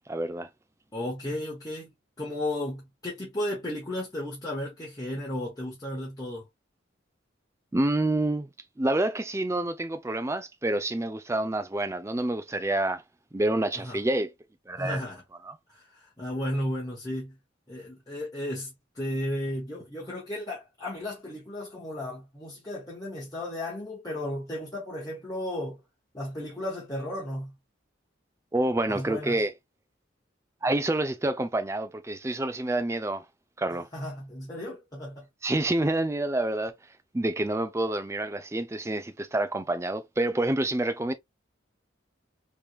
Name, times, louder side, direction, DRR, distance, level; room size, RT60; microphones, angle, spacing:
voice 1, 0.1-0.5 7.7-8.5 8.8-13.0 13.3-14.3 14.7-15.0 15.4-15.5 28.5-29.5 30.6-33.2 33.6-33.9 35.4-36.7 37.1-41.1, right 1 dB, 15° right, 0.4 m, -28 dB
voice 2, 0.9-6.5 13.7-14.0 14.8-15.2 15.7-17.4 17.7-25.8 26.1-27.5 28.9-29.4 33.9-35.3, left 1 dB, 20° left, 1.0 m, -34 dB
3.4 x 3.0 x 2.3 m
head